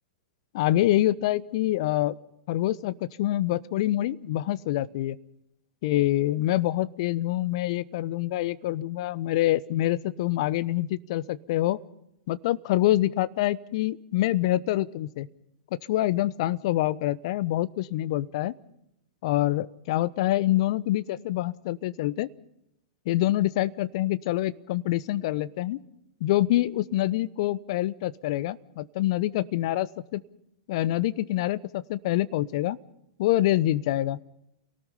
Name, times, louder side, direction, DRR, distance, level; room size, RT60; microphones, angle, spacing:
voice 1, 0.5-2.2 2.5-5.2 5.8-11.8 12.3-15.3 15.9-18.5 19.2-22.3 23.1-25.8 26.2-30.2 30.7-32.8 33.2-34.2, left 15 dB, 55° left, 17 dB, 1.0 m, -26 dB
28.5 x 18.5 x 5.7 m, 0.79 s
figure-of-eight pair, 105°, 4 cm